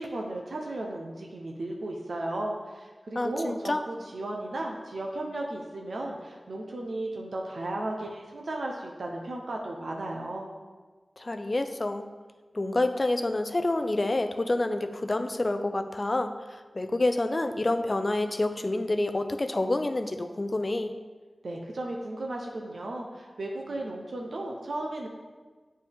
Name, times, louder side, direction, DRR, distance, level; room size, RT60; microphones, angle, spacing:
voice 1, 0.0-10.5 21.4-25.1, right 1 dB, 80° right, 0 dB, 0.7 m, -35 dB
voice 2, 3.1-3.8 11.2-12.1 12.5-20.9, left 2 dB, 45° left, 9 dB, 0.5 m, -28 dB
8.6 x 4.3 x 3.5 m, 1.3 s
wide cardioid pair, 50°, 0 cm